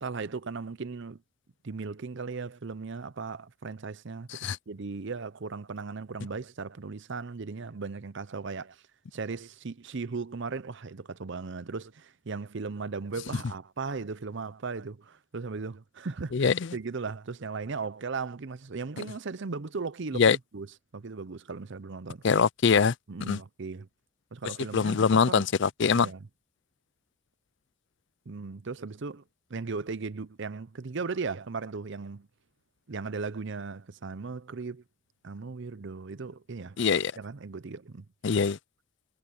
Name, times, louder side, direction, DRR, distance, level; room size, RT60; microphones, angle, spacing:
voice 1, 0.0-1.2 1.6-8.8 9.1-22.2 23.1-23.9 24.3-25.5 25.9-26.3 28.3-29.2 29.5-32.3 32.9-34.8 35.2-36.8 37.2-38.0, right 4 dB, 55° right, 0.6 m, -37 dB
voice 2, 22.2-22.9 23.3-23.4 24.7-26.1 36.8-37.1 38.2-38.6, left 5 dB, 55° left, 0.5 m, -23 dB
head